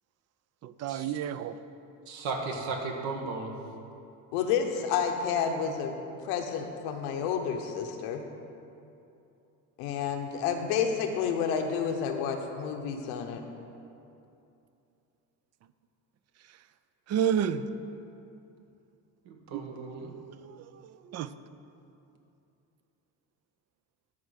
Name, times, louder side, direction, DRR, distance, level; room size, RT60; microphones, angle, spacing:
voice 1, 0.6-1.6 16.5-16.6 17.1-17.7 19.5-21.3, right 8 dB, 45° right, 13 dB, 0.5 m, -32 dB
voice 2, 2.1-3.5 19.2-20.1, right 3 dB, 70° right, 2 dB, 1.6 m, -35 dB
voice 3, 4.3-5.9 6.2-8.2 9.8-13.4, left 7 dB, 90° left, 4 dB, 1.0 m, -30 dB
13.0 x 4.4 x 6.5 m, 2.7 s
cardioid pair, 105°, 39 cm